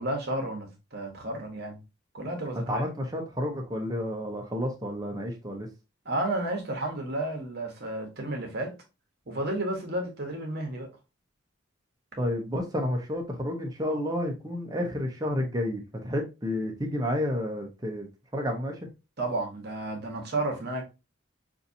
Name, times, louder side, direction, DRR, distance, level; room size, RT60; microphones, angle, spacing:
voice 1, 0.0-1.8 2.1-2.9 6.0-8.7 9.3-10.9 19.2-20.8, right 1 dB, 50° right, 1.2 m, -32 dB
voice 2, 2.7-5.7 12.2-18.8, left 1 dB, 20° right, 0.9 m, -30 dB
5.6 x 2.7 x 2.7 m
head